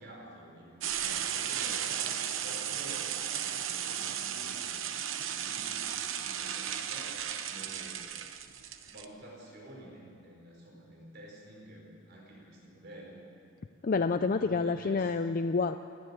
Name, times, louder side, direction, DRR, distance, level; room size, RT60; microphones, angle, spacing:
voice 1, 0.0-8.1 8.8-13.3 14.2-15.3, right 1 dB, 50° right, -2 dB, 4.5 m, -50 dB
sound 1, 0.8-9.0, right 9 dB, 65° right, 1.0 m, -35 dB
voice 2, 13.8-15.8, left 4 dB, 40° left, 9 dB, 0.4 m, -28 dB
29.0 x 10.5 x 9.6 m, 2.6 s
head